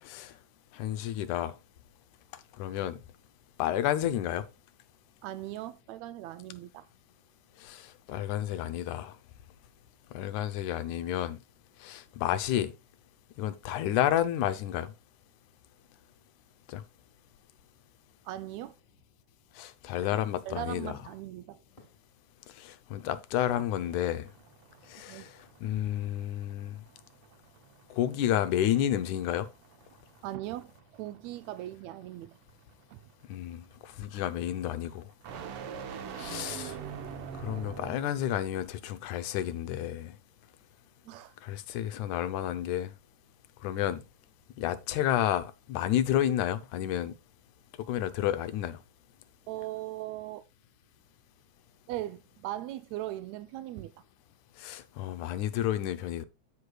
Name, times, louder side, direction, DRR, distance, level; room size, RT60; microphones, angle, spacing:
voice 1, 0.0-0.3 0.7-1.6 2.6-3.0 3.6-4.4 7.6-9.2 10.1-11.4 11.8-12.7 13.4-14.9 16.7-16.8 19.6-21.0 22.6-24.3 24.9-25.3 25.6-26.8 27.9-29.5 33.3-35.1 36.2-36.8 37.4-40.2 41.4-42.9 43.6-44.0 44.6-47.1 47.9-48.8 54.6-56.2, left 11 dB, 85° left, 2.2 m, -31 dB
voice 2, 5.2-6.9 18.3-18.7 20.5-21.6 25.1-25.3 30.2-32.3 32.9-33.0 41.1-41.3 49.5-50.4 51.9-53.9, right 14 dB, 80° right, 1.7 m, -39 dB
sound 1, 20.0-20.2 21.8-22.0 23.4-23.8 24.2-24.3, left 2 dB, 25° left, 1.5 m, -48 dB
sound 2, 23.7-38.2, right 7 dB, 65° right, 1.6 m, -46 dB
14.5 x 4.9 x 2.3 m
omnidirectional pair, 3.4 m